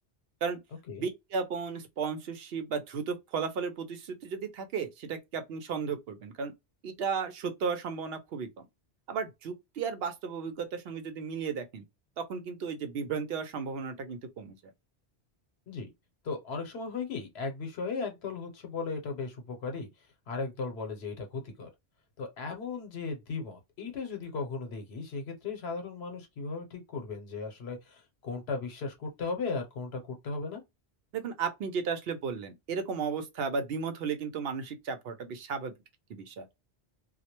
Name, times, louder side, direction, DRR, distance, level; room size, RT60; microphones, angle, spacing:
voice 1, 1.0-6.5 6.8-8.5 9.1-11.8 12.2-14.6 31.1-35.7 36.1-36.5, right 5 dB, 70° right, 0.8 m, -34 dB
voice 2, 16.2-19.9 20.3-21.7 22.2-30.6, left 4 dB, 75° left, 1.0 m, -36 dB
2.3 x 2.1 x 2.8 m
omnidirectional pair, 1.1 m